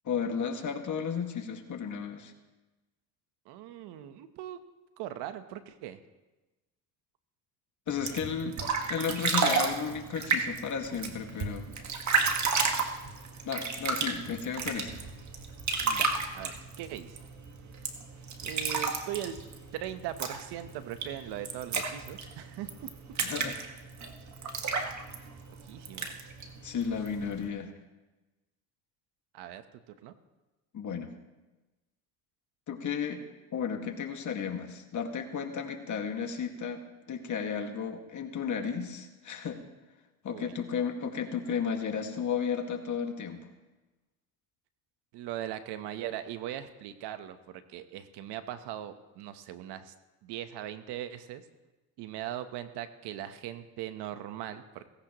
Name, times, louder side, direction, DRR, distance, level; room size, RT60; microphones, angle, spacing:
voice 1, 0.1-2.3 7.9-8.6 8.9-11.7 13.4-14.9 23.2-23.6 26.6-27.7 30.7-31.1 32.7-33.2 33.5-39.6 40.2-43.4, left 6 dB, 45° left, 4 dB, 1.9 m, -33 dB
voice 2, 3.4-4.6 5.0-6.0 15.8-17.2 18.4-19.4 19.7-22.7 25.7-26.1 29.3-30.1 40.3-40.5 45.1-49.9 50.2-51.4 52.0-54.9, right 11 dB, 75° right, 10 dB, 1.1 m, -40 dB
sound 1, 7.9-27.5, right 5 dB, 45° right, 1.7 m, -33 dB
17.5 x 16.5 x 3.1 m, 1.1 s
supercardioid pair, 95°, 41 cm